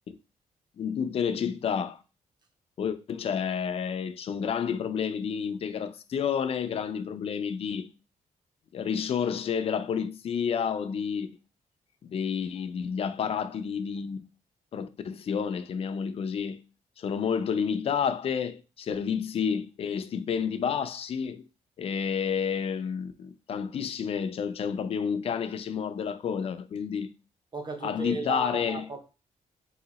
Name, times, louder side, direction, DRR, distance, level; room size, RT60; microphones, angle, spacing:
voice 1, 0.8-2.0 2.8-7.9 8.7-11.3 12.0-14.2 14.7-16.6 17.0-21.4 21.8-27.1 27.8-28.8, left 7 dB, 45° left, 0.4 m, -30 dB
voice 2, 27.5-29.0, right 2 dB, 30° right, 0.7 m, -34 dB
3.9 x 2.6 x 4.0 m
wide cardioid pair, 155°, 14 cm